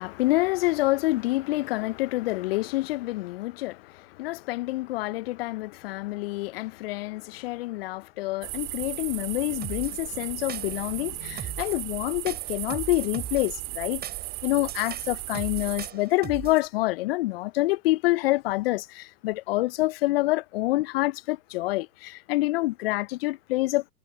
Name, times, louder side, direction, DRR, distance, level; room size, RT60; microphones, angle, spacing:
voice 1, 0.0-14.0 14.4-23.9, left 19 dB, 40° left, 0.9 m, -27 dB
sound 1, 8.4-15.9, right 38 dB, 35° right, 2.3 m, -36 dB
sound 2, 9.6-10.0 10.5-10.9 11.4-11.8 12.3-13.5 14.0-16.7, right 9 dB, 20° right, 6.3 m, -39 dB
figure-of-eight pair, 110°, 46 cm